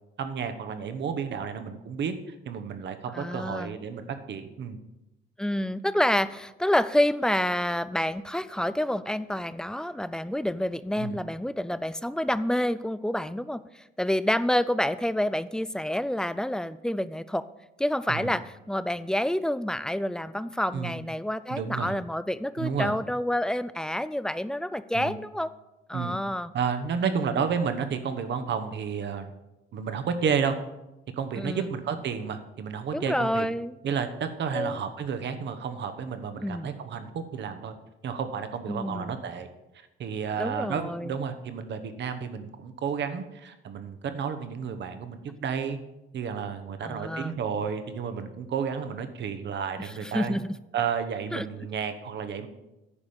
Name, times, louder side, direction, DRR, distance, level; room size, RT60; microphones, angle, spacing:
voice 1, 0.2-4.8 11.0-11.2 18.1-18.4 20.7-21.0 21.5-21.9 22.6-22.9 24.9-25.2 25.9-26.1 26.5-29.3 29.7-30.6 31.2-33.5 33.8-37.7 38.0-39.5 40.0-45.8 46.1-50.3 50.7-52.5, right 6 dB, 65° right, 9 dB, 1.1 m, -31 dB
voice 2, 3.1-3.7 5.4-17.4 17.8-25.5 25.9-26.5 27.0-27.5 31.3-31.7 32.9-33.8 34.5-34.8 36.4-36.8 38.7-39.2 40.4-41.2 46.8-47.4 49.8-50.6 51.3-51.7, left 1 dB, 5° left, 15 dB, 0.4 m, -28 dB
9.9 x 5.0 x 7.2 m, 0.97 s
cardioid pair, 90°, 20 cm